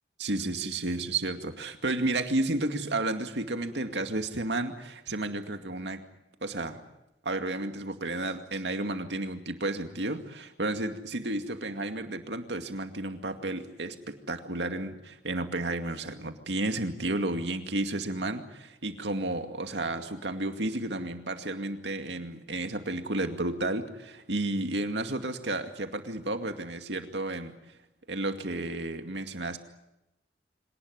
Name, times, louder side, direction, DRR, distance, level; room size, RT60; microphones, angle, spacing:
voice 1, 0.2-6.0 6.4-6.8 7.2-27.5 28.1-29.6, right 2 dB, 90° right, 6 dB, 2.3 m, -32 dB
25.5 x 19.0 x 9.6 m, 0.89 s
head